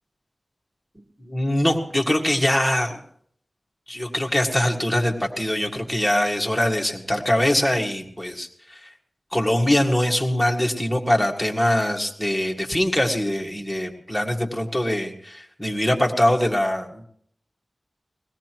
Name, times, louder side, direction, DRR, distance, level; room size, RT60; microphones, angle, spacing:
voice 1, 1.2-3.0 3.9-8.9 9.3-17.0, left 1 dB, ahead, 0 dB, 1.9 m, -23 dB
21.5 x 17.5 x 3.0 m, 0.66 s
wide cardioid pair, 70°, 0 cm